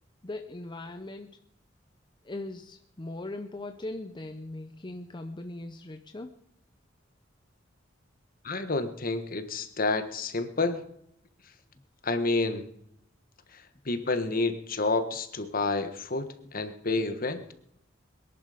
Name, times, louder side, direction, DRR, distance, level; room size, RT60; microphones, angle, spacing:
voice 1, 0.2-1.4 2.2-6.3, left 2 dB, 25° left, 7 dB, 0.7 m, -39 dB
voice 2, 8.4-10.8 12.0-12.7 13.5-17.4, left 3 dB, 50° left, 9 dB, 1.4 m, -29 dB
22.0 x 11.0 x 5.1 m, 0.74 s
head